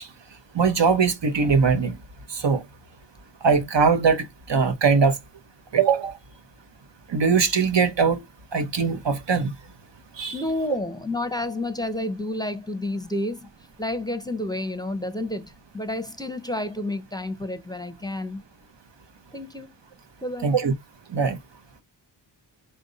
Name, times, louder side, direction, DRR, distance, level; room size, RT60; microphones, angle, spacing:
voice 1, 0.5-2.0 2.3-2.6 3.4-5.2 5.7-6.1 7.1-8.2 8.5-9.5 10.2-10.4 20.4-20.7 21.1-21.4, right 5 dB, 80° right, 0.8 m, -21 dB
voice 2, 10.3-13.5 13.8-18.4 19.3-19.8 20.2-20.5, left 1 dB, 10° left, 0.6 m, -30 dB
5.1 x 2.2 x 3.8 m
wide cardioid pair, 60°, 43 cm